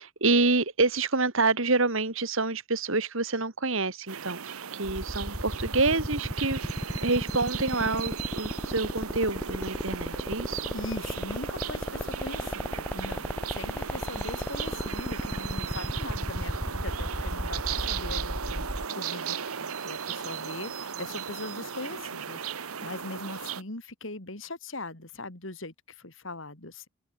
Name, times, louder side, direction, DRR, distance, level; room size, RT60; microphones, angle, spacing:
voice 1, 0.0-4.4 4.7-6.6 7.0-10.6, right 3 dB, 65° right, 2.4 m, -27 dB
sound 1, 4.1-23.6, right 7 dB, 85° right, 1.1 m, -37 dB
sound 2, 4.8-18.9, equal, 10° left, 2.3 m, -33 dB
voice 2, 10.7-26.9, left 2 dB, 65° left, 3.5 m, -41 dB
head